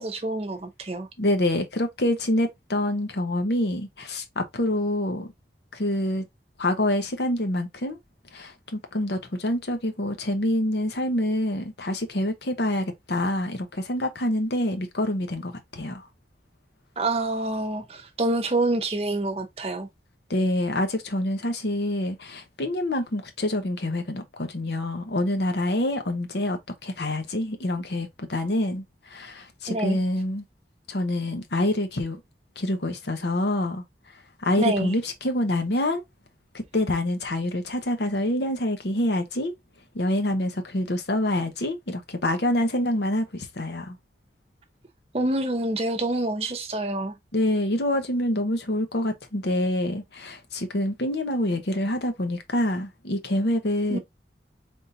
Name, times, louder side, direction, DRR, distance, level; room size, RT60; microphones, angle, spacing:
voice 1, 0.0-1.1 17.0-19.9 29.7-30.0 34.6-34.9 45.1-47.1 53.9-54.0, right 2 dB, 35° right, 0.7 m, -27 dB
voice 2, 1.2-5.3 5.7-6.2 6.6-8.0 8.3-16.0 20.3-30.4 30.9-32.2 32.6-33.8 34.4-36.0 36.5-39.5 39.9-44.0 47.3-54.0, left 1 dB, 70° left, 1.0 m, -26 dB
4.0 x 3.6 x 2.7 m
head